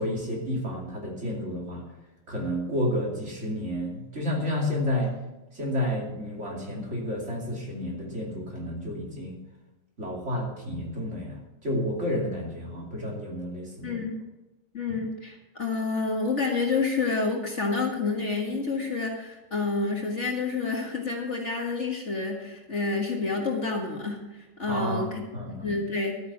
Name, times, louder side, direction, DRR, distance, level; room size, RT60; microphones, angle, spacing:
voice 1, 0.0-1.8 2.3-5.2 5.5-9.4 10.0-14.0 14.9-15.0 24.7-25.8, left 1 dB, 40° right, -2 dB, 2.9 m, -31 dB
voice 2, 13.8-14.2 14.7-25.2 25.6-26.2, left 4 dB, 40° left, 1 dB, 1.9 m, -29 dB
12.5 x 9.3 x 6.0 m, 1.0 s
omnidirectional pair, 1.9 m